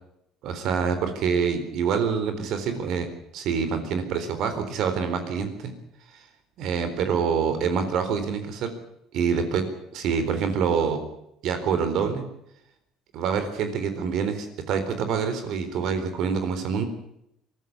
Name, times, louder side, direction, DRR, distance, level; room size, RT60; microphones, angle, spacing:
voice 1, 0.4-3.1 3.3-5.7 6.1-6.2 6.6-8.7 9.1-9.7 9.9-11.0 11.4-12.2 13.1-16.9, right 6 dB, 60° right, 9 dB, 4.0 m, -26 dB
23.5 x 13.5 x 9.8 m, 0.78 s
cardioid pair, 140°, 0 cm